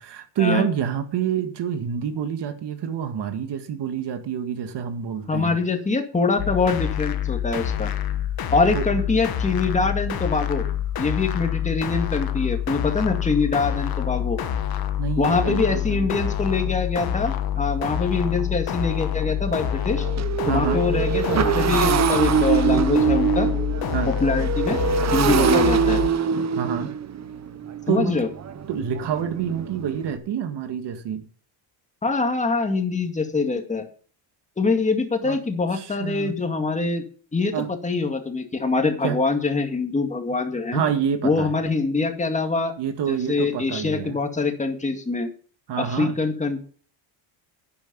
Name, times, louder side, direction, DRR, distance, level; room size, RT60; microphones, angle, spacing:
voice 1, 0.0-5.6 8.7-8.9 15.0-16.1 20.5-20.8 23.9-24.1 25.2-25.5 26.6-26.9 27.9-28.2 28.7-31.3 35.2-35.4 35.7-36.4 37.5-37.7 39.0-39.2 40.7-41.6 42.8-44.1 45.7-46.2, right 8 dB, 55° right, 2.1 m, -27 dB
voice 2, 5.3-7.9 8.5-10.6 11.0-14.4 15.2-20.1 20.5-23.5 24.2-24.8 25.1-26.0 27.9-28.3 32.0-33.8 34.6-37.0 37.3-37.5 37.8-40.8 41.2-42.7 43.1-45.3 45.8-46.6, left 3 dB, 15° left, 2.1 m, -24 dB
sound 1, 6.4-26.1, left 10 dB, 45° left, 1.5 m, -27 dB
Motorcycle, 17.6-17.7 18.1-18.3 18.6-30.2, right 7 dB, 35° right, 1.0 m, -24 dB
11.0 x 10.0 x 5.3 m
cardioid pair, 160°, 49 cm